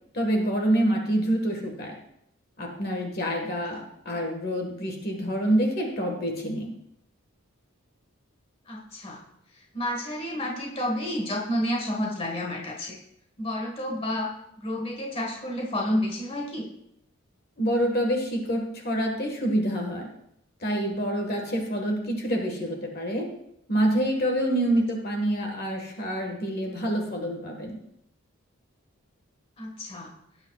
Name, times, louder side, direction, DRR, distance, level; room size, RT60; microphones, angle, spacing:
voice 1, 0.1-2.0 2.6-6.7 17.6-20.1 20.6-23.2 23.7-27.8, right 1 dB, 45° left, 2 dB, 1.5 m, -27 dB
voice 2, 8.7-9.2 9.7-13.0 13.4-16.7 29.6-30.1, left 1 dB, 25° left, -1 dB, 1.6 m, -30 dB
17.5 x 8.9 x 2.4 m, 0.77 s
head